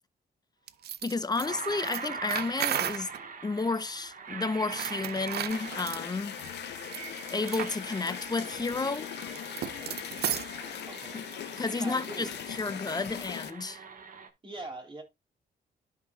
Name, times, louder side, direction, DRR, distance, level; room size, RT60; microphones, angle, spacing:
sound 1, 0.7-0.8 1.4-14.3, right 5 dB, 55° right, 1.3 m, -43 dB
sound 2, 0.7-3.2 4.6-6.0 6.8-7.0 7.5-7.8 8.1-8.2 8.5-10.6, right 10 dB, 70° right, 0.6 m, -34 dB
voice 1, 1.0-3.1 3.4-6.4 7.3-9.1 11.6-12.3 12.6-13.8, left 3 dB, 25° left, 0.6 m, -31 dB
water from tap, 5.5-13.5, left 12 dB, 85° left, 0.6 m, -40 dB
voice 2, 10.8-11.2 11.7-12.4 14.4-15.0, right 2 dB, 30° right, 3.1 m, -42 dB
12.5 x 5.7 x 2.2 m
cardioid pair, 95°, 17 cm